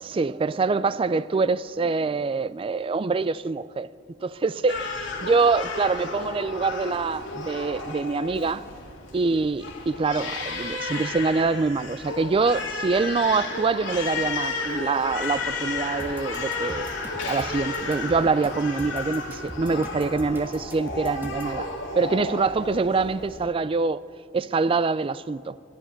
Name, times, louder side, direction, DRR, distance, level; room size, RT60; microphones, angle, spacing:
voice 1, 0.0-3.9 4.2-4.8 5.2-8.7 9.1-16.9 17.2-21.7 22.0-24.0 24.3-25.6, right 4 dB, 30° right, 0.3 m, -25 dB
Crying sobbing, 4.7-23.5, left 3 dB, 90° left, 2.2 m, -33 dB
sound 1, 13.8-19.6, left 1 dB, 10° left, 2.7 m, -43 dB
sound 2, 16.0-21.6, equal, 10° right, 1.5 m, -41 dB
18.0 x 11.5 x 6.4 m
head